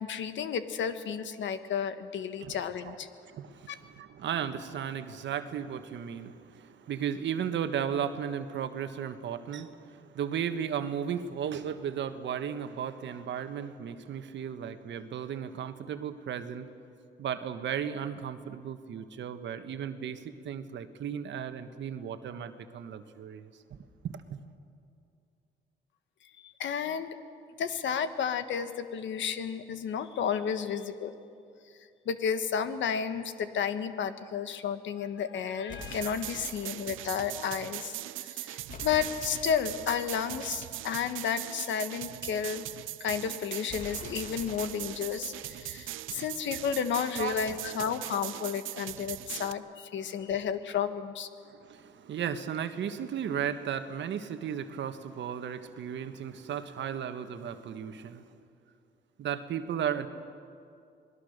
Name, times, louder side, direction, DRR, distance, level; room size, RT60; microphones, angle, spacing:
voice 1, 0.0-3.1 3.7-3.8 26.4-27.1 27.6-31.1 32.0-37.9 38.2-42.7 43.0-51.3, left 7 dB, 70° left, 10 dB, 1.4 m, -32 dB
voice 2, 3.3-16.7 17.2-23.8 24.0-24.4 46.1-46.6 47.2-47.6 50.0-50.2 51.4-58.3 59.2-60.1, right 8 dB, 65° right, 9 dB, 1.4 m, -35 dB
sound 1, 35.7-36.9 38.7-41.4 43.7-46.4, left 4 dB, 40° left, 2.2 m, -48 dB
sound 2, 35.8-49.5, right 15 dB, 85° right, 0.6 m, -40 dB
27.5 x 20.0 x 6.6 m, 2.5 s
cardioid pair, 90°, 20 cm